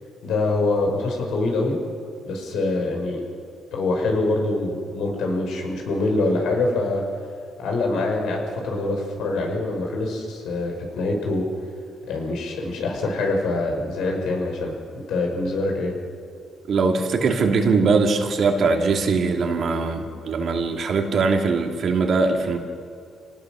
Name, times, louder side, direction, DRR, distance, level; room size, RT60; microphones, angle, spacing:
voice 1, 0.2-1.8 2.3-3.2 3.7-7.0 7.6-11.5 12.1-14.8 15.1-15.9, left 2 dB, 80° left, 1 dB, 5.2 m, -24 dB
voice 2, 16.7-22.6, right 4 dB, 60° right, 2 dB, 2.7 m, -21 dB
26.5 x 18.5 x 6.3 m, 2.4 s
cardioid pair, 90°, 0 cm